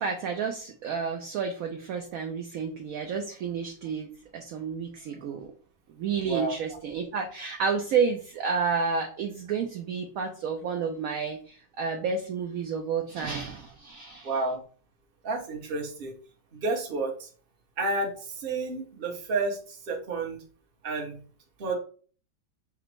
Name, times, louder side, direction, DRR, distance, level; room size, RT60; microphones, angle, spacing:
voice 1, 0.0-5.5 6.0-14.3, right 5 dB, 70° right, 4 dB, 0.8 m, -30 dB
voice 2, 6.2-6.8 14.2-14.6 15.2-16.2 16.5-17.3 17.8-20.4 20.8-21.2 21.6-21.8, right 3 dB, 40° right, 1 dB, 0.9 m, -31 dB
4.9 x 2.1 x 4.5 m, 0.42 s
omnidirectional pair, 2.0 m